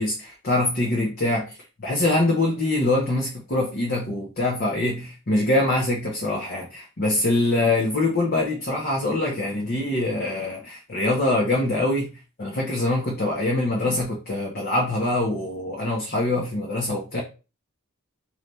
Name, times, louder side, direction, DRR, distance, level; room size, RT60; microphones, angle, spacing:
voice 1, 0.0-12.1 12.4-17.2, left 2 dB, 50° left, -3 dB, 1.0 m, -24 dB
3.3 x 3.0 x 4.0 m, 0.32 s
head